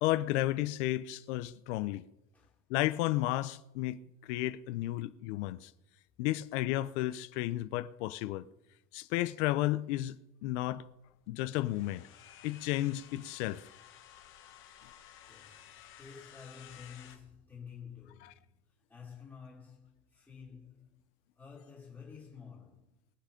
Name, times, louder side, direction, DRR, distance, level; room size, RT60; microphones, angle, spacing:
voice 1, 0.0-2.0 2.7-4.0 4.2-5.7 6.2-8.5 8.9-10.2 10.4-10.8 11.3-12.1 12.4-13.6 18.2-18.3, left 16 dB, 75° left, 0.7 m, -32 dB
sound 1, 10.4-17.2, left 10 dB, 35° left, 1.5 m, -55 dB
voice 2, 15.2-18.5 18.9-21.0 21.4-22.9, left 6 dB, 5° left, 2.1 m, -51 dB
22.5 x 7.6 x 5.1 m
cardioid pair, 175°, 35 cm